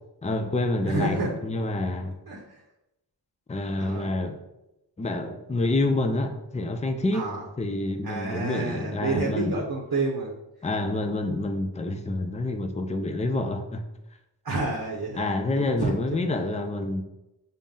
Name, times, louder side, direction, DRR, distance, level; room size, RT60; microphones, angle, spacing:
voice 1, 0.2-1.2 1.4-2.1 3.5-4.4 5.0-7.3 7.6-9.6 10.6-13.8 15.2-17.0, left 2 dB, 15° left, 6 dB, 0.4 m, -27 dB
voice 2, 0.9-1.7 2.3-2.6 3.8-4.1 7.1-7.4 8.0-10.3 14.4-16.2, right 3 dB, 50° right, -2 dB, 0.8 m, -30 dB
5.4 x 2.1 x 3.7 m, 0.91 s
wide cardioid pair, 45°, 45 cm